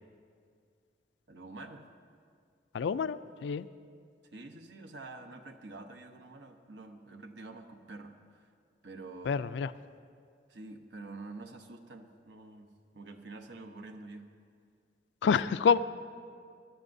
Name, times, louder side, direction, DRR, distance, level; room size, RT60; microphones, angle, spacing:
voice 1, 1.3-1.8 4.3-8.5 8.8-9.5 10.5-14.3 15.2-15.4, right 2 dB, 75° right, 6 dB, 0.9 m, -47 dB
voice 2, 2.7-3.7 9.3-9.7 15.2-15.8, left 6 dB, 80° left, 14 dB, 0.3 m, -27 dB
21.0 x 11.5 x 2.7 m, 2.2 s
head